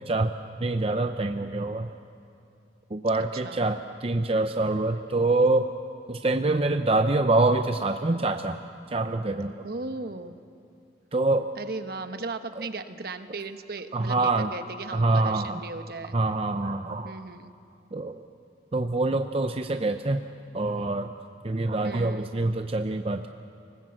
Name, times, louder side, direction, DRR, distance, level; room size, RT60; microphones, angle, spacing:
voice 1, 0.6-1.9 2.9-5.7 6.1-8.6 8.9-9.5 11.1-11.5 13.9-14.5 14.9-15.6 16.1-17.2 17.9-18.2 18.7-20.2 20.5-21.1 21.4-23.3, right 2 dB, 30° right, 7 dB, 0.6 m, -25 dB
voice 2, 3.3-3.7 9.6-10.4 11.6-16.2 17.0-17.5 21.8-22.3, right 3 dB, 55° right, 9 dB, 1.0 m, -37 dB
24.5 x 20.0 x 7.7 m, 2.5 s
head